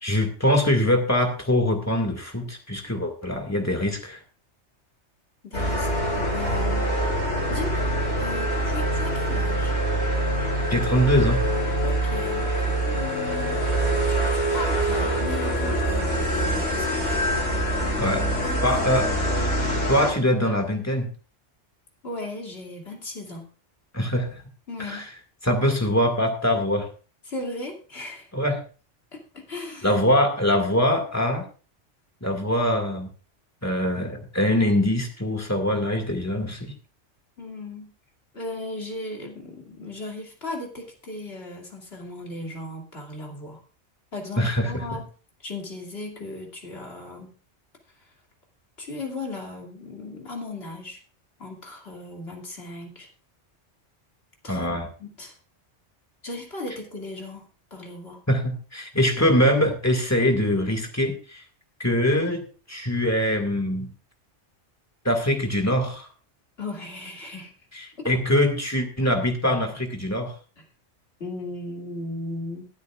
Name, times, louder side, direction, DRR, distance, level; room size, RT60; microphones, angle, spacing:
voice 1, 0.0-4.2 10.7-11.4 18.0-18.2 18.6-19.1 19.9-21.1 23.9-24.3 24.9-25.0 25.4-26.9 28.3-28.6 29.8-31.4 32.2-33.1 33.6-36.7 44.4-45.0 54.5-54.9 58.3-61.4 61.8-63.9 65.0-66.1 67.7-70.3, left 1 dB, 15° left, 4 dB, 2.1 m, -23 dB
voice 2, 5.4-6.9 7.5-9.7 11.8-13.6 14.1-17.2 18.4-18.8 19.2-19.3 22.0-23.5 24.7-25.1 27.2-28.3 29.1-30.0 37.4-37.9 38.3-43.6 44.1-45.1 45.4-47.3 48.0-48.1 48.8-51.0 51.4-53.1 54.4-54.7 55.0-55.4 56.2-58.2 66.6-67.5 68.0-68.1 70.6-70.7 71.2-72.7, left 2 dB, 55° left, 0 dB, 2.9 m, -37 dB
sound 1, 5.5-20.1, right 1 dB, 80° left, 4.4 m, -24 dB
22.0 x 8.4 x 2.5 m, 0.37 s
omnidirectional pair, 1.2 m